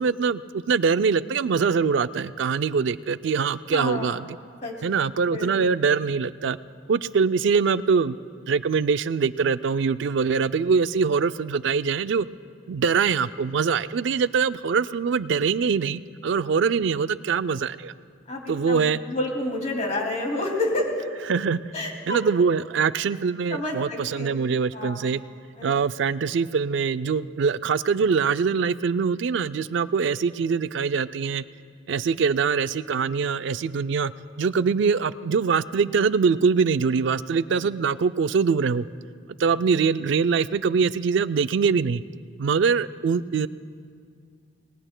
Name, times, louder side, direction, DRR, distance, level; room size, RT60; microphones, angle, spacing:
voice 1, 0.0-4.4 4.8-6.6 6.9-8.2 8.5-12.3 12.7-17.9 18.5-19.0 21.3-21.6 22.1-25.2 25.6-31.4 31.9-34.1 34.4-38.9 39.4-42.0 42.4-43.5, right 5 dB, 65° right, 14 dB, 0.3 m, -23 dB
voice 2, 3.7-4.1 4.6-4.7 5.3-5.7 18.3-20.9 21.7-22.2 23.5-24.5 24.7-25.1 25.6-25.7, left 1 dB, 35° left, 0 dB, 2.3 m, -29 dB
28.0 x 19.0 x 2.2 m, 2.2 s
head